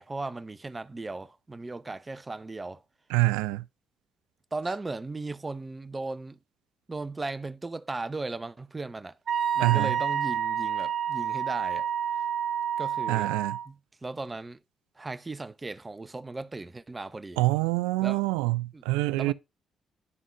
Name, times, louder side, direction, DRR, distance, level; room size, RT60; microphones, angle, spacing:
voice 1, 0.0-2.8 4.5-6.4 6.9-9.2 9.5-11.9 12.8-13.3 13.7-14.6 15.0-17.4 18.0-18.2 18.7-18.8 19.2-19.3, right 3 dB, 25° right, 0.7 m, -37 dB
voice 2, 3.1-3.6 9.6-9.9 13.1-13.6 17.4-19.3, right 20 dB, 90° right, 0.3 m, -26 dB
Wind instrument woodwind instrument, 9.3-13.7, right 8 dB, 60° right, 0.7 m, -29 dB
11.0 x 3.8 x 3.3 m
supercardioid pair, 50°, 0 cm